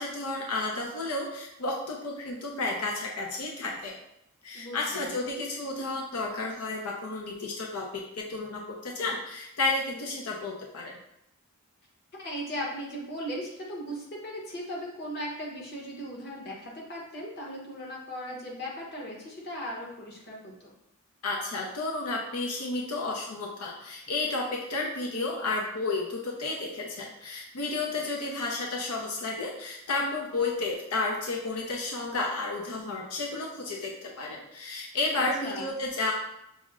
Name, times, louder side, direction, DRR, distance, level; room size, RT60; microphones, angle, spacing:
voice 1, 0.0-3.9 4.4-10.9 21.2-36.1, left 3 dB, 90° left, -1 dB, 0.6 m, -32 dB
voice 2, 4.5-5.2 12.2-20.7 27.9-28.0 35.1-35.7, equal, 45° left, -4 dB, 1.1 m, -38 dB
6.1 x 2.1 x 3.6 m, 0.83 s
head